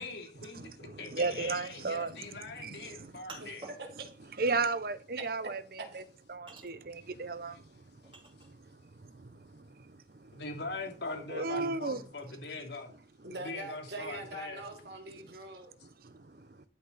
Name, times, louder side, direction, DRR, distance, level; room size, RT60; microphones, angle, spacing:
voice 1, 0.0-3.7 7.0-7.1 7.5-7.6 10.3-12.9 13.4-14.7, left 3 dB, 70° left, 2.9 m, -42 dB
voice 2, 0.5-2.3 2.6-3.5 4.4-6.0 6.3-7.6 8.4-8.6 9.0-10.4 11.3-12.0 15.8-16.7, right 3 dB, 55° right, 0.7 m, -35 dB
sound 1, 1.6-8.9 9.2-12.1, right 2 dB, 30° right, 2.9 m, -54 dB
voice 3, 13.2-15.7, right 1 dB, 70° right, 2.5 m, -43 dB
11.5 x 9.5 x 4.1 m
head